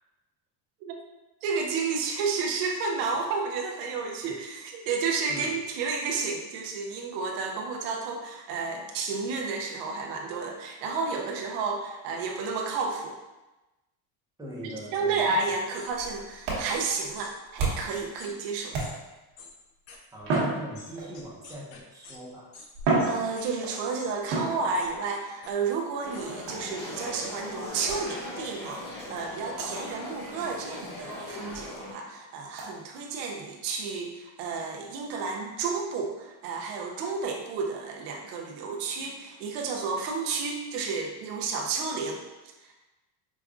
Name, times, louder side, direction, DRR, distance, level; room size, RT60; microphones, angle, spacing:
voice 1, 1.4-13.1 14.6-18.8 23.1-42.2 42.6-42.7, right 4 dB, 90° right, 1 dB, 0.7 m, -31 dB
voice 2, 14.4-15.2 20.1-22.6, right 1 dB, 10° right, -5 dB, 0.7 m, -41 dB
sound 1, 15.7-15.9 17.2-17.3 18.2-18.3 18.8-18.9 19.4-19.5 19.9-20.0 20.3-20.4 20.7-22.2 22.5-22.7 23.0-23.5 24.0-24.2 24.7-24.9 25.4-25.5 26.1-26.2, left 4 dB, 50° left, 0.7 m, -47 dB
sound 2, 15.9-18.1 18.7-19.3 20.2-21.3 22.2-22.3 22.7-23.8 24.3-25.0 26.5-26.8 27.9-28.1 28.7-28.8 29.2-29.3 29.6-29.8 30.1-30.2 30.6-30.7 31.1-31.2 31.6-31.7 32.6-32.7, right 3 dB, 60° right, 1.2 m, -31 dB
sound 3, 26.0-31.9, left 1 dB, 30° left, 1.2 m, -39 dB
5.0 x 2.3 x 2.4 m, 1.1 s
cardioid pair, 135°, 47 cm